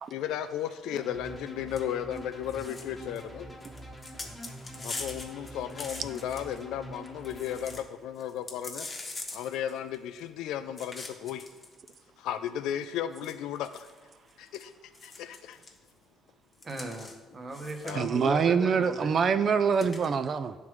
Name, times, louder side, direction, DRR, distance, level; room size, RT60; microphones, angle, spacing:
voice 1, 0.1-3.5 4.8-8.9 9.3-11.5 12.2-13.9 14.4-14.7 15.0-15.6 17.8-18.4, left 10 dB, 85° left, 0.3 m, -35 dB
sound 1, 0.9-7.8, right 1 dB, 10° left, 1.3 m, -45 dB
sound 2, 1.7-1.8 2.1-2.2 2.5-3.2 3.6-6.6 7.0-7.1 7.2-7.8 8.2-10.2 10.8-11.9 12.7-12.8 13.2-14.6 14.9-15.8 16.6-17.2 17.5-18.2 19.7-20.1, left 3 dB, 25° left, 1.0 m, -42 dB
voice 2, 16.6-19.1, right 2 dB, 35° right, 1.0 m, -38 dB
voice 3, 17.9-20.6, right 6 dB, 50° right, 0.3 m, -25 dB
10.5 x 3.6 x 3.1 m
cardioid pair, 95°, 0 cm